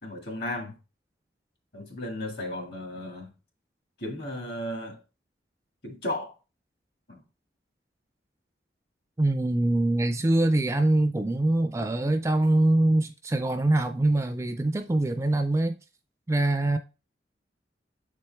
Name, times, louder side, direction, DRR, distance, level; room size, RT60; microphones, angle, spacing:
voice 1, 0.0-0.8 1.7-3.3 4.0-5.0 5.8-6.4 7.1-7.2, left 1 dB, 55° left, 1.8 m, -34 dB
voice 2, 9.2-15.8 16.3-16.8, right 2 dB, 15° right, 0.3 m, -24 dB
7.5 x 4.3 x 3.4 m
head